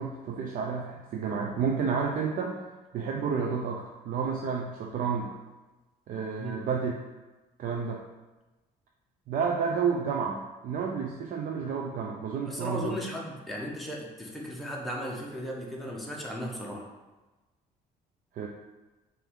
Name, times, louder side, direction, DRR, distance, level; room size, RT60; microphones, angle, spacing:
voice 1, 0.0-2.6 2.9-5.4 6.1-6.9 7.6-8.0 9.3-13.0 18.3-18.5, right 6 dB, 55° right, 1 dB, 0.5 m, -30 dB
voice 2, 12.5-16.9, equal, ahead, -3 dB, 0.9 m, -36 dB
5.5 x 2.7 x 3.6 m, 1.1 s
cardioid pair, 110°, 17 cm